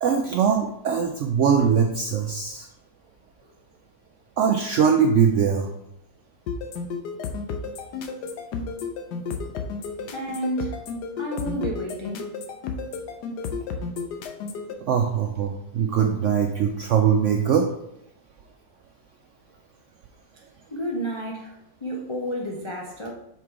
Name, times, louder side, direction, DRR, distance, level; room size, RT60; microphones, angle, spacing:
voice 1, 0.0-2.7 4.4-5.7 14.9-17.7, right 7 dB, 75° right, 3 dB, 0.7 m, -21 dB
sound 1, 6.5-14.7, left 5 dB, 80° left, 1.3 m, -32 dB
voice 2, 10.1-10.8 11.2-12.3 20.7-23.1, right 1 dB, 45° left, -2 dB, 0.3 m, -31 dB
5.8 x 4.7 x 3.6 m, 0.80 s
omnidirectional pair, 1.8 m